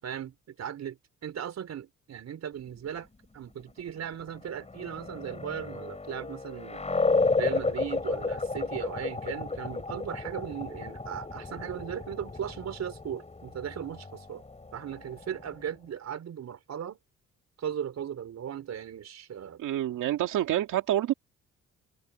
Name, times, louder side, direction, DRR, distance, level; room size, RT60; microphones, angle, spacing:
voice 1, 0.0-3.1 3.3-6.8 7.4-14.4 14.7-17.0 17.6-19.6, right 9 dB, 60° right, 4.5 m, -37 dB
sound 1, 4.3-15.7, left 3 dB, 20° left, 4.6 m, -32 dB
voice 2, 19.6-21.1, right 12 dB, 80° right, 2.4 m, -27 dB
cardioid pair, 90°, 30 cm